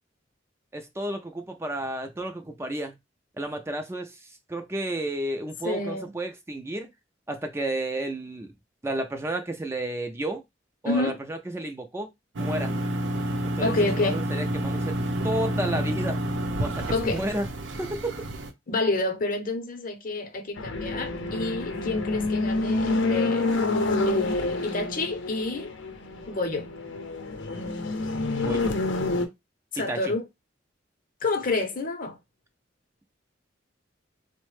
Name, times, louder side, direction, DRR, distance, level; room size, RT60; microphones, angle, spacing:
voice 1, 0.7-3.0 3.4-4.2 4.5-6.9 7.3-8.5 8.8-10.4 10.8-12.1 12.4-12.8 13.4-13.7 14.0-15.0 15.2-16.2 16.6-17.5 17.8-18.1 28.3-28.8 29.9-30.1, right 1 dB, 15° right, 0.4 m, -31 dB
voice 2, 5.6-6.1 10.8-11.2 13.6-14.2 16.9-17.2 18.7-23.5 24.1-25.7 26.3-26.7 29.7-30.3 31.2-32.2, left 2 dB, 50° left, 0.7 m, -28 dB
sound 1, 12.4-18.5, right 1 dB, 85° right, 0.6 m, -29 dB
sound 2, 20.6-29.3, left 2 dB, 85° left, 0.6 m, -28 dB
3.9 x 2.1 x 3.1 m
head